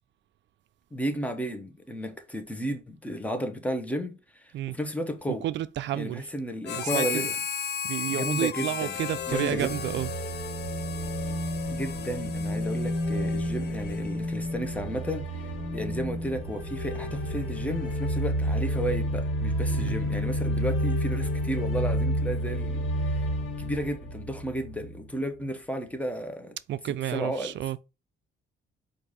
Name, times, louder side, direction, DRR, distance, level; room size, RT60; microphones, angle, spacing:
voice 1, 0.9-5.5 5.9-7.3 8.1-9.0 9.3-9.7 11.7-15.4 15.7-23.2 23.6-26.6 27.1-27.6, equal, 5° left, 0.9 m, -33 dB
voice 2, 5.3-6.3 6.7-7.3 7.8-10.1 19.7-20.0 26.7-27.8, right 12 dB, 65° right, 0.4 m, -31 dB
Harmonica, 6.6-14.4, left 7 dB, 55° left, 0.6 m, -35 dB
sound 1, 9.0-25.0, equal, 90° left, 1.5 m, -30 dB
4.6 x 2.6 x 4.0 m
cardioid pair, 90°, 20 cm